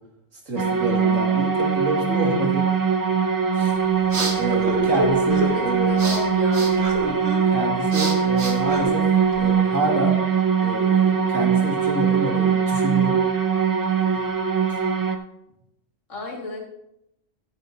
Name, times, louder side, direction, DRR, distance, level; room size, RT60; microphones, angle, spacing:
voice 1, 0.5-2.7 3.5-3.7 4.4-5.9 7.0-7.1 7.5-9.1 9.4-10.2 10.6-13.2, right 1 dB, 90° right, -1 dB, 2.7 m, -28 dB
sound 1, 0.6-15.2, right 6 dB, 35° right, 0.3 m, -21 dB
sound 2, 3.6-9.5, right 1 dB, 60° right, 1.7 m, -30 dB
voice 2, 5.2-6.9 16.1-16.6, left 2 dB, 80° left, -1 dB, 2.7 m, -33 dB
14.0 x 9.1 x 2.8 m, 0.83 s
omnidirectional pair, 1.3 m